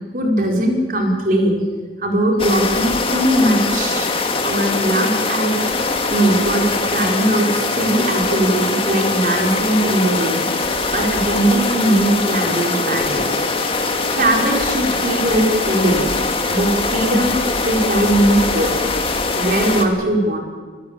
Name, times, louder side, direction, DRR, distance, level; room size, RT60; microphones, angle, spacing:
voice 1, 0.1-1.7 2.0-4.1 4.4-5.5 6.1-10.5 10.9-13.3 14.1-16.2 16.5-17.4 17.6-18.7 19.3-20.4, right 1 dB, 50° right, 1 dB, 4.7 m, -19 dB
sound 1, 2.4-19.9, left 3 dB, 30° left, 2.0 m, -22 dB
24.0 x 15.0 x 8.9 m, 1.5 s
head